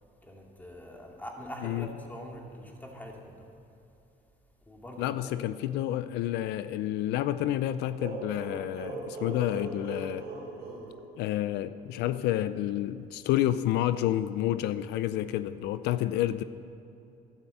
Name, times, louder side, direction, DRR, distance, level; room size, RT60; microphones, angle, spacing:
voice 1, 0.2-3.5 4.7-5.4, equal, 10° left, 0 dB, 2.5 m, -43 dB
voice 2, 5.0-10.3 11.2-16.4, left 13 dB, 85° left, 13 dB, 0.5 m, -29 dB
sound 1, 8.0-11.7, right 2 dB, 75° right, 4.3 m, -40 dB
12.0 x 12.0 x 7.8 m, 2.8 s
cardioid pair, 110°, 17 cm